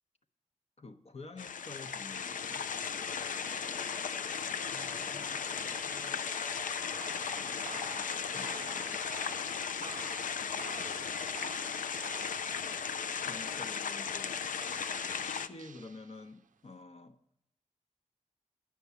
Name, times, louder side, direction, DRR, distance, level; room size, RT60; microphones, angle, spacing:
voice 1, 0.8-2.7 8.3-8.9 13.3-14.4 15.0-17.2, left 3 dB, 50° left, 0.9 m, -49 dB
sound 1, 1.4-15.5, left 6 dB, 90° left, 0.4 m, -36 dB
sound 2, 3.2-9.7, left 1 dB, 20° left, 0.5 m, -51 dB
voice 2, 4.6-7.1 7.6-8.5 9.1-9.9 10.6-11.2 14.9-15.2, right 1 dB, 15° right, 0.9 m, -59 dB
sound 3, 6.3-16.5, right 7 dB, 85° right, 0.4 m, -51 dB
10.5 x 6.1 x 8.2 m
wide cardioid pair, 80°, 13 cm